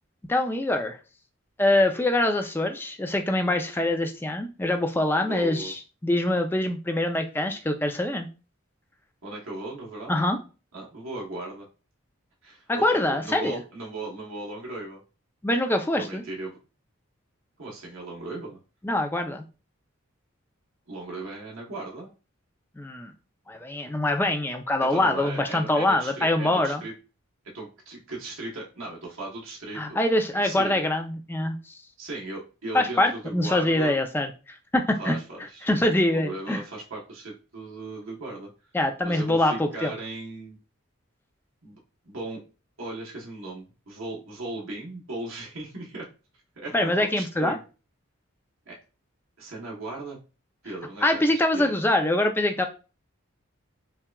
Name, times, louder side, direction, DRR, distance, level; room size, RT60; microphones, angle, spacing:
voice 1, 0.3-1.0 1.6-8.3 10.1-10.4 12.7-13.6 15.4-16.2 18.8-19.4 22.8-23.1 23.5-26.8 29.8-31.8 32.7-35.2 35.6-36.6 38.7-39.9 46.7-47.6 51.0-52.7, left 1 dB, 10° left, 5 dB, 0.3 m, -24 dB
voice 2, 5.2-5.7 9.2-10.2 10.7-11.7 12.4-15.0 16.0-16.6 17.6-18.6 20.9-22.1 24.8-26.9 27.5-30.0 30.3-30.8 32.0-34.0 35.0-35.7 36.1-38.5 39.0-40.6 41.6-41.8 42.0-42.4 42.8-46.0 46.6-47.6 48.7-48.8 49.4-50.2 50.6-51.7, right 2 dB, 70° right, -3 dB, 1.1 m, -37 dB
5.7 x 2.3 x 2.3 m, 0.33 s
head